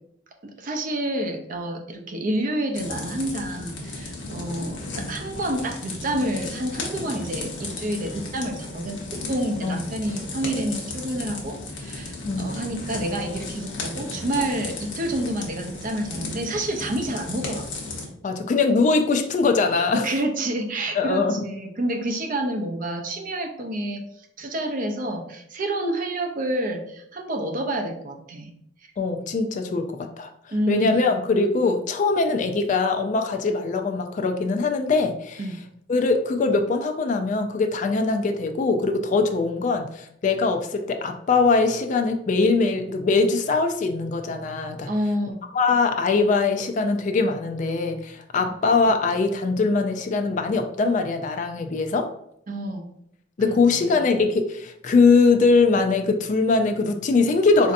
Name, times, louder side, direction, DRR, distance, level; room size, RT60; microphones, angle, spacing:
voice 1, 0.4-17.7 19.9-24.0 24.4-28.5 29.7-29.9 30.5-30.9 35.4-35.6 44.9-45.4 48.4-48.5 52.5-52.9 53.4-54.0, right 1 dB, 45° right, 4 dB, 0.5 m, -28 dB
sound 1, 2.7-18.0, left 2 dB, 85° left, 0.8 m, -35 dB
voice 2, 18.2-20.0 20.9-21.4 29.0-30.3 30.7-35.5 35.9-44.9 45.5-52.1 53.4-57.7, left 4 dB, 40° left, 6 dB, 0.3 m, -22 dB
4.2 x 2.6 x 2.5 m, 0.72 s
head